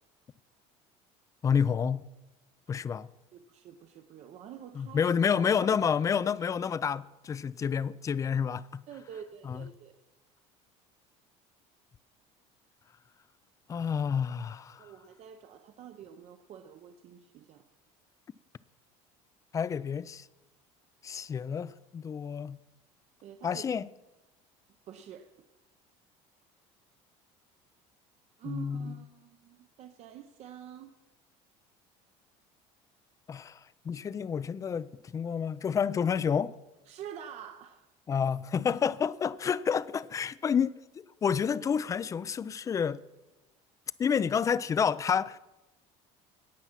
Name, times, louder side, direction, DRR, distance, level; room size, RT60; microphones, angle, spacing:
voice 1, 1.4-2.1 2.7-3.1 4.8-8.8 9.4-9.7 13.7-14.9 19.5-20.3 21.0-22.6 23.4-23.9 28.5-28.9 33.3-33.6 33.8-36.5 38.1-43.0 44.0-45.4, left 7 dB, 25° left, 0.4 m, -29 dB
voice 2, 3.3-5.7 8.9-10.0 14.8-17.7 23.2-23.7 24.9-25.5 28.4-30.9 36.9-37.9, right 9 dB, 50° right, 0.7 m, -47 dB
17.5 x 6.1 x 5.8 m
cardioid pair, 120°, 14 cm